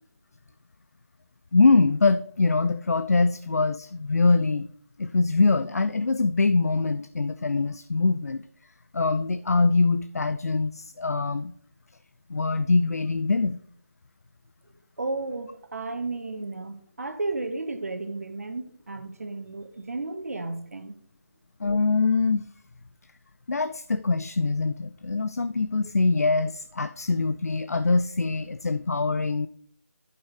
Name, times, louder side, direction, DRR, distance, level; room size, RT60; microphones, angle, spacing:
voice 1, 1.5-4.7 5.0-8.4 8.9-11.5 12.3-13.6 21.6-22.4 23.5-29.5, left 3 dB, 75° left, 0.5 m, -23 dB
voice 2, 15.0-20.9, right 3 dB, 65° right, 1.3 m, -33 dB
11.5 x 5.6 x 3.4 m
figure-of-eight pair, 160°, 9 cm